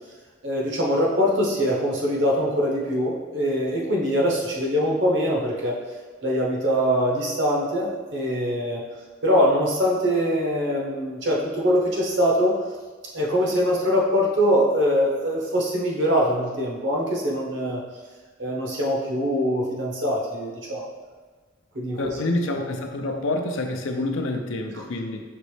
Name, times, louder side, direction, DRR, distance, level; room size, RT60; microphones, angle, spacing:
voice 1, 0.4-5.8 6.2-8.8 9.2-12.5 13.1-17.8 18.4-20.9 21.7-22.0 24.7-24.8, equal, 60° right, -2 dB, 0.9 m, -23 dB
voice 2, 22.0-25.2, left 2 dB, 75° left, 4 dB, 0.5 m, -27 dB
5.2 x 3.0 x 3.2 m, 1.4 s
head